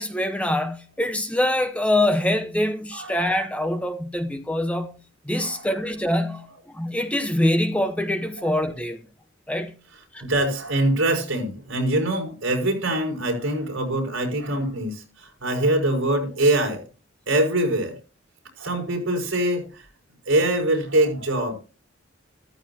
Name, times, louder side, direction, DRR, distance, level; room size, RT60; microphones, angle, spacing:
voice 1, 0.0-4.9 5.3-6.5 6.7-9.0 9.5-9.7 10.1-10.2, left 1 dB, 5° left, 0.8 m, -24 dB
voice 2, 5.3-5.7 8.4-8.5 10.2-16.8 17.3-18.0 18.6-19.8 20.3-21.6, right 1 dB, 70° right, 5.5 m, -23 dB
14.0 x 13.5 x 2.8 m
head